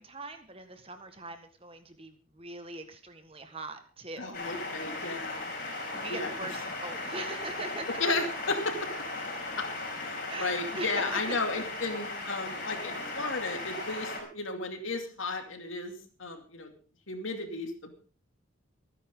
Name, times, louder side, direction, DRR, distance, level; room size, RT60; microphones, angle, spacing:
voice 1, 0.0-4.4 5.9-7.9 10.3-11.4, right 2 dB, 30° right, 8 dB, 1.6 m, -41 dB
voice 2, 4.2-5.4 6.1-6.3 8.0-8.9 9.6-9.7 10.0-15.9 16.2-16.7 17.1-17.9, left 3 dB, 80° left, 5 dB, 2.7 m, -34 dB
sound 1, 4.3-14.2, left 2 dB, 45° left, 4.9 m, -37 dB
25.0 x 9.9 x 3.8 m, 0.36 s
head